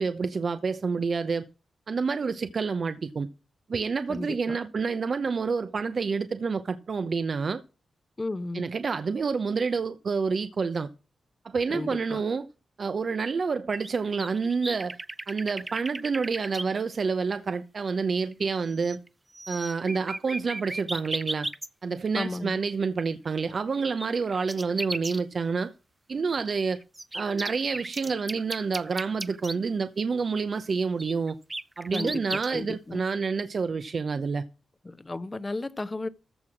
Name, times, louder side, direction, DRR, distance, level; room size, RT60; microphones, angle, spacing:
voice 1, 0.0-1.5 1.9-3.3 3.7-7.6 8.5-10.9 11.4-12.5 12.8-15.0 15.3-19.0 19.5-21.5 21.8-25.7 26.1-26.8 27.1-31.4 31.8-34.4, right 5 dB, 55° right, 0.8 m, -28 dB
voice 2, 4.1-4.6 8.2-8.6 11.7-12.2 22.1-22.6 31.9-33.0 34.8-36.1, left 2 dB, 25° left, 0.8 m, -34 dB
sound 1, 13.7-16.6 18.3-18.4 18.7-19.1 19.3-21.7 23.5-25.2 26.4-29.5 31.0-32.5, right 2 dB, 20° right, 0.6 m, -35 dB
14.5 x 5.7 x 6.2 m
cardioid pair, 80°, 0 cm